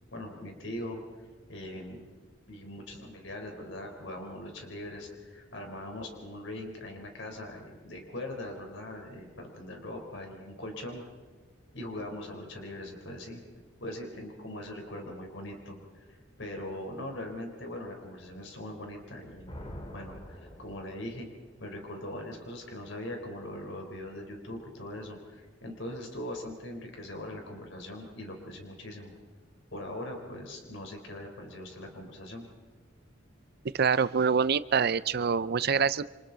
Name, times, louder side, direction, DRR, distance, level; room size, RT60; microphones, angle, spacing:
voice 1, 0.1-1.0 1.5-2.1 2.5-11.0 11.7-13.4 13.8-19.5 19.9-21.3 21.6-29.1 29.7-32.5, left 1 dB, 70° left, 2 dB, 4.1 m, -41 dB
Thunder, 19.0-21.4, equal, 30° left, 2.5 m, -46 dB
voice 2, 33.7-36.1, right 6 dB, 55° right, 16 dB, 0.5 m, -25 dB
28.5 x 26.0 x 4.0 m, 1.4 s
head